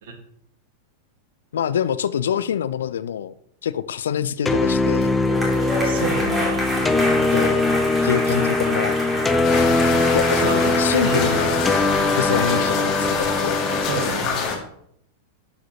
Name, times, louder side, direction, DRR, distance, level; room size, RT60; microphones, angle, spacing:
voice 1, 1.5-3.3 3.6-5.2 7.3-7.6 8.0-9.0 10.1-11.6 12.2-13.6, left 9 dB, 65° left, 15 dB, 0.3 m, -25 dB
sound 1, 4.5-14.1, left 2 dB, 10° left, 0.6 m, -21 dB
sound 2, 4.7-12.6, equal, 15° right, 2.4 m, -28 dB
voice 2, 5.8-6.6 10.4-10.7 11.0-11.3 13.8-14.4, right 4 dB, 55° right, 5 dB, 1.3 m, -29 dB
sound 3, 9.4-14.6, left 5 dB, 35° left, 1.7 m, -26 dB
11.5 x 5.0 x 2.8 m, 0.72 s
figure-of-eight pair, 90°, 0 cm